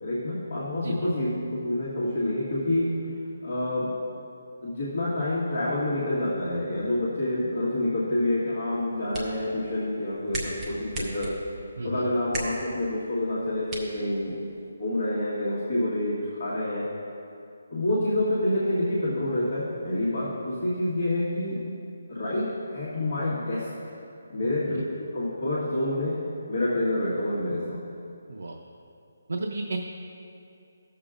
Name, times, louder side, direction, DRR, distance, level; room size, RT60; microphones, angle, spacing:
voice 1, 0.0-2.9 3.4-4.1 4.6-11.3 11.8-14.4 14.8-16.9 17.7-21.6 22.1-22.5 22.7-23.7 24.3-26.2 26.5-27.8, left 1 dB, 40° left, -9 dB, 1.5 m, -27 dB
sound 1, 8.7-14.7, right 1 dB, 10° right, 0.6 m, -39 dB
voice 2, 11.8-12.1 24.7-24.8 28.3-28.6 29.3-29.8, right 3 dB, 75° right, 1 dB, 0.6 m, -33 dB
15.5 x 6.7 x 2.5 m, 2.6 s
hypercardioid pair, 180°, 0 cm